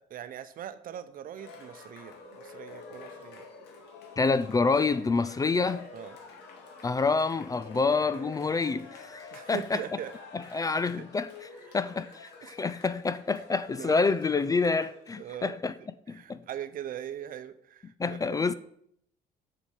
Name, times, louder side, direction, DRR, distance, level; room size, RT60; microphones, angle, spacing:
voice 1, 0.0-3.5 5.9-6.2 9.3-10.1 10.4-10.7 11.0-11.1 12.4-12.6 13.8-14.0 15.2-15.6 16.1-18.3, right 10 dB, 55° right, 0.8 m, -41 dB
Cheering, 1.3-15.2, left 4 dB, 80° left, 2.2 m, -48 dB
voice 2, 4.2-5.9 6.8-9.8 10.3-11.5 11.7-15.7 16.1-16.4 18.0-18.5, left 4 dB, 20° left, 0.4 m, -27 dB
6.9 x 6.7 x 6.4 m
cardioid pair, 110°, 17 cm